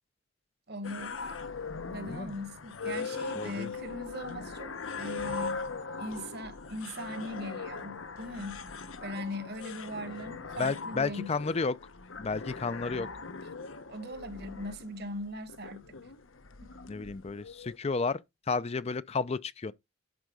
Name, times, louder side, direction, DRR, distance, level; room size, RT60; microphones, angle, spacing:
voice 1, 0.7-1.4 1.9-5.6 6.0-8.6 9.0-11.3 13.9-15.9 16.6-16.7, equal, 55° right, 1.5 m, -40 dB
sound 1, 0.8-17.8, left 4 dB, 80° left, 1.0 m, -40 dB
voice 2, 3.4-3.7 10.6-11.8 12.2-13.1 16.9-18.2 18.5-19.7, left 4 dB, 30° left, 0.4 m, -32 dB
11.0 x 4.5 x 5.3 m
head